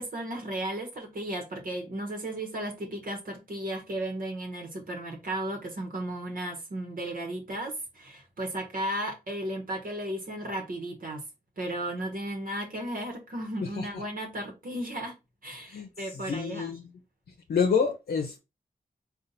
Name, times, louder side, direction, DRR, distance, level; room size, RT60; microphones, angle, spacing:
voice 1, 0.0-11.2 11.6-15.1 15.4-16.7, right 1 dB, 60° right, 1.1 m, -35 dB
voice 2, 16.1-16.9 17.5-18.4, left 6 dB, 85° left, 0.7 m, -28 dB
3.9 x 2.4 x 4.0 m
wide cardioid pair, 80°, 16 cm